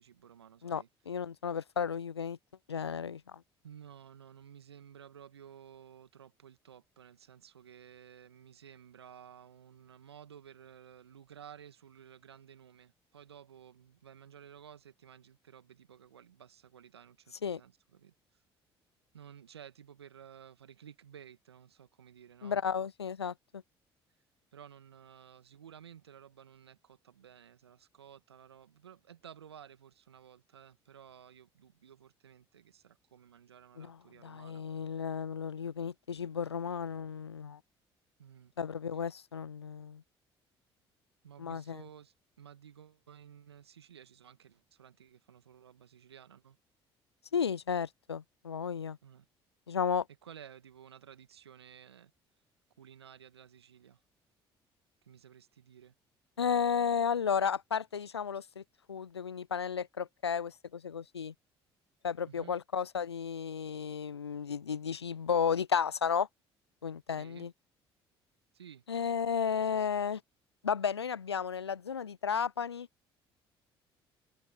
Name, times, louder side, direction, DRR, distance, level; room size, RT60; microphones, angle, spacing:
voice 1, 0.0-0.9 3.6-18.4 19.1-22.6 24.5-34.6 38.2-38.5 41.2-46.6 49.0-49.3 50.2-52.1 52.8-54.0 55.0-55.9 62.3-62.6 67.2-67.5 68.5-68.8 69.6-70.0, right 9 dB, 85° right, 1.7 m, -54 dB
voice 2, 0.6-2.4 2.7-3.4 17.4-17.6 22.4-23.6 33.8-37.6 38.6-40.0 41.4-41.8 47.3-49.0 49.7-50.1 56.4-58.6 58.9-61.3 62.0-66.3 66.8-67.5 68.9-70.2 70.6-72.9, left 7 dB, 90° left, 0.5 m, -33 dB
open air
figure-of-eight pair, 55°, 13 cm